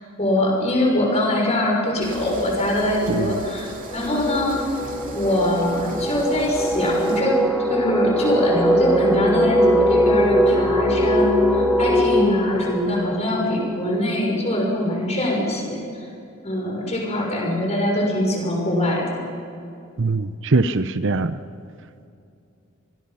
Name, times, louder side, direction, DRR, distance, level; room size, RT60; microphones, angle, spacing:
voice 1, 0.2-4.7 5.1-16.1 16.4-19.2, left 1 dB, 30° left, -1 dB, 6.1 m, -23 dB
sound 1, 2.0-7.2, right 2 dB, 40° right, 2.7 m, -39 dB
sound 2, 2.1-2.3 2.7-14.2, equal, ahead, 2.7 m, -22 dB
voice 2, 20.0-21.4, right 3 dB, 55° right, 11 dB, 0.8 m, -22 dB
27.0 x 20.5 x 5.8 m, 2.6 s
head